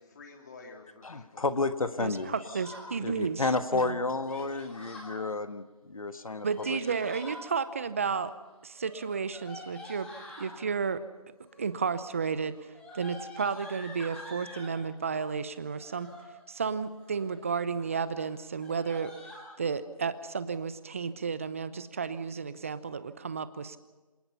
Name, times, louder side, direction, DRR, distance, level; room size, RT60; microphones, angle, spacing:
voice 1, 0.0-2.1, left 3 dB, 30° left, 2 dB, 3.3 m, -50 dB
voice 2, 1.0-2.3 3.0-6.8, left 3 dB, 70° left, 10 dB, 1.4 m, -31 dB
voice 3, 2.0-4.0 6.4-8.3 8.6-10.1 10.4-11.0 11.6-16.1 16.5-19.1 19.6-23.8, right 5 dB, 25° right, 14 dB, 0.7 m, -32 dB
Yell, 2.1-2.9 4.3-5.1 6.3-7.4 8.7-10.5 11.4-11.8 12.1-14.8 15.7-16.3 16.8-17.3 17.7-17.9 18.1-18.2 18.6-19.5, left 1 dB, 5° left, 2.4 m, -47 dB
27.0 x 18.5 x 5.6 m, 1.2 s
figure-of-eight pair, 165°, 19 cm